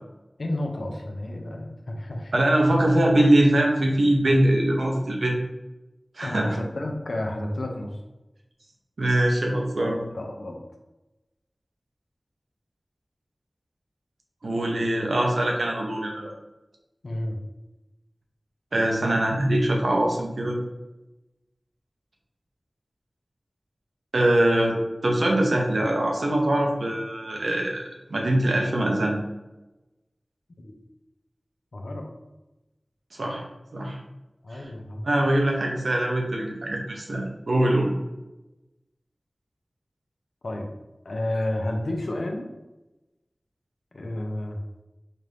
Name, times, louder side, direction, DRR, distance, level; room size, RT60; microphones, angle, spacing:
voice 1, 0.4-2.4 2.7-2.8 6.2-7.9 9.8-10.6 17.0-17.4 30.6-30.7 31.7-32.1 34.4-35.0 40.4-40.7 41.0-42.5 43.9-44.6, left 1 dB, 85° left, 2 dB, 0.6 m, -31 dB
voice 2, 2.3-5.4 6.2-6.5 9.0-10.0 14.4-16.3 18.7-20.6 24.1-24.8 25.0-27.8 28.1-29.2 33.1-33.5 33.7-34.0 34.5-34.6 35.0-37.9, right 1 dB, 90° right, 0 dB, 0.7 m, -22 dB
4.2 x 2.5 x 3.3 m, 1.0 s
wide cardioid pair, 45°, 0 cm